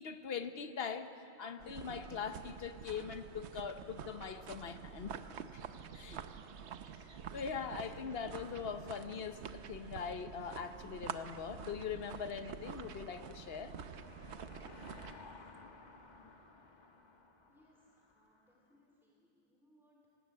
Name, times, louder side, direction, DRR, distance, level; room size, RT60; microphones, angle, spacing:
voice 1, 0.0-5.2 5.5-5.6 5.9-6.2 7.1-13.7, left 6 dB, 55° left, 9 dB, 1.1 m, -42 dB
sound 1, 1.6-15.1, right 7 dB, 65° right, 1.0 m, -48 dB
Car passing by / Engine, 12.3-18.6, left 3 dB, 35° left, 1.3 m, -57 dB
voice 2, 17.5-20.1, equal, ahead, -3 dB, 2.6 m, -70 dB
19.0 x 19.0 x 8.4 m, 2.9 s
omnidirectional pair, 1.3 m